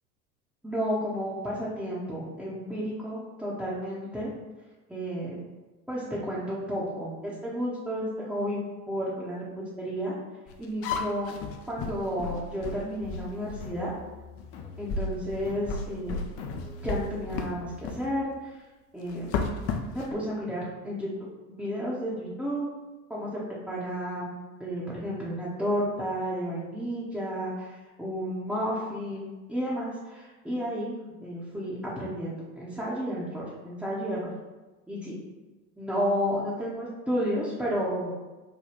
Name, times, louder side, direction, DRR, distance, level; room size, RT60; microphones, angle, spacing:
voice 1, 0.6-4.3 4.9-5.5 5.9-8.6 8.9-10.1 10.6-11.4 11.7-13.9 14.8-16.2 16.8-18.6 18.9-19.6 19.9-21.1 21.5-22.7 23.1-31.0 31.2-34.3 34.9-35.2 35.8-38.1, equal, ahead, -8 dB, 0.7 m, -32 dB
sound 1, 10.5-13.8 14.4-14.5 14.9-17.6 17.8-18.0 19.1-20.1, left 4 dB, 35° left, 0.4 m, -33 dB
sound 2, 13.0-18.2, left 1 dB, 75° left, 0.6 m, -44 dB
5.0 x 2.2 x 2.9 m, 1.2 s
hypercardioid pair, 75°, 44 cm